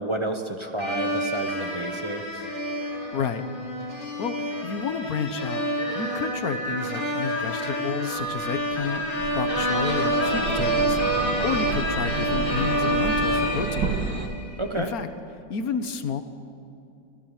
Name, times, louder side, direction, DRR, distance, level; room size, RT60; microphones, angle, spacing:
voice 1, 0.0-2.4 14.6-14.9, right 1 dB, 20° right, 5 dB, 1.0 m, -30 dB
sound 1, 0.8-14.5, equal, 25° left, 4.0 m, -27 dB
voice 2, 3.1-3.4 4.2-5.6 5.9-11.0 11.4-13.9 14.8-15.1 15.5-16.2, left 6 dB, 55° left, 9 dB, 1.5 m, -30 dB
sound 2, 8.2-14.3, right 5 dB, 75° right, 2.1 m, -32 dB
27.0 x 15.5 x 7.4 m, 2.7 s
omnidirectional pair, 2.0 m